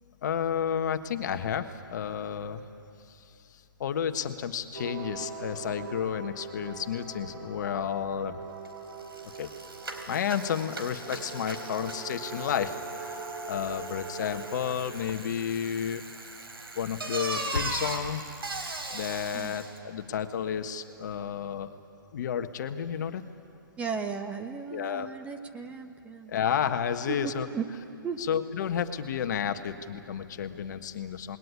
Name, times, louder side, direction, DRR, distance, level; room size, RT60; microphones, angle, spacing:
voice 1, 0.2-2.6 3.1-3.2 3.8-8.4 9.4-9.5 10.1-16.0 16.7-18.2 18.9-21.7 22.1-23.2 24.7-25.1 26.3-27.5 28.2-31.4, left 8 dB, 50° left, 8 dB, 1.4 m, -31 dB
sound 1, 4.7-14.7, right 4 dB, 70° right, 4.9 m, -42 dB
Bicycle, 8.7-8.8 9.0-19.8, right 2 dB, 85° right, 4.1 m, -39 dB
Fireworks, 15.0-20.8 21.2-21.3, left 4 dB, 85° left, 1.9 m, -43 dB
voice 2, 23.8-26.4 27.1-27.7 28.0-28.2, right 5 dB, 10° right, 5 dB, 1.1 m, -35 dB
27.5 x 20.5 x 9.7 m, 2.6 s
hypercardioid pair, 140°, 12 cm